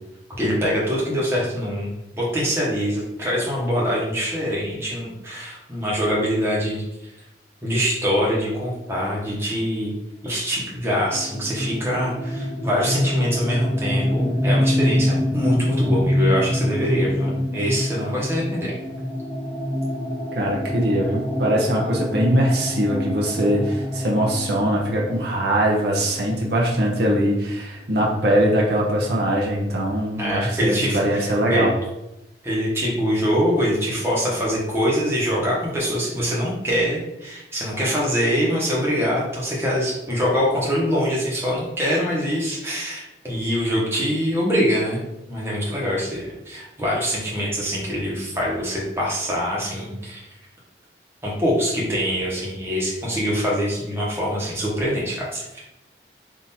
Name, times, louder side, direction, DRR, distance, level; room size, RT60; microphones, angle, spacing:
voice 1, 0.4-7.1 7.6-9.9 10.2-18.7 30.2-31.7 32.4-50.2 51.2-55.4, equal, 15° right, -5 dB, 1.1 m, -24 dB
sound 1, 11.1-26.7, left 1 dB, 5° left, 0.7 m, -25 dB
voice 2, 20.3-31.7, right 1 dB, 65° right, -3 dB, 0.8 m, -21 dB
3.6 x 2.7 x 4.2 m, 0.93 s
head